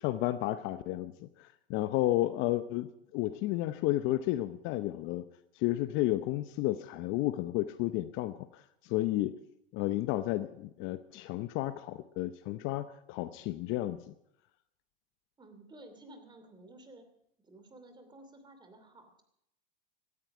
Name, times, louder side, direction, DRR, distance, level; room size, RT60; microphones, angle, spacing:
voice 1, 0.0-2.9 3.1-5.2 5.5-9.3 9.7-14.0, left 15 dB, 45° left, 12 dB, 0.7 m, -32 dB
voice 2, 15.4-17.1 17.4-19.2, right 1 dB, 15° right, 8 dB, 2.8 m, -53 dB
17.5 x 13.5 x 4.9 m, 0.78 s
hypercardioid pair, 120°, 30 cm